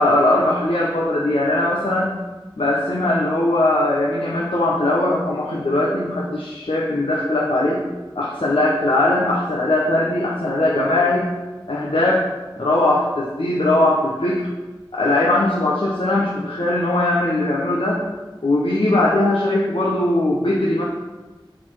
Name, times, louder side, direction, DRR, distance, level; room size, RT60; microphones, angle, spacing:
voice 1, 0.0-2.1 2.6-7.9 8.1-11.3 11.7-12.3 12.6-14.5 14.9-18.0 18.4-20.8, left 1 dB, 90° left, -5 dB, 1.1 m, -20 dB
7.6 x 4.3 x 6.0 m, 1.2 s
wide cardioid pair, 40°, 9 cm